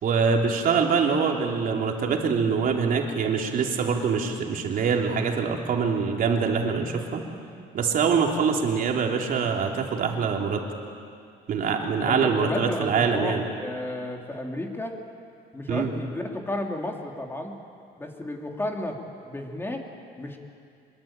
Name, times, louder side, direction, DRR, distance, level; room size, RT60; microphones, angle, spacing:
voice 1, 0.0-7.2 7.7-10.6 11.5-13.4 15.7-15.9, right 5 dB, 55° right, 1 dB, 3.6 m, -24 dB
voice 2, 12.0-14.9 15.5-17.5 18.0-19.0 19.2-19.9 20.2-20.4, left 1 dB, 15° left, 2 dB, 3.3 m, -32 dB
25.5 x 22.5 x 9.1 m, 2.4 s
cardioid pair, 110°, 17 cm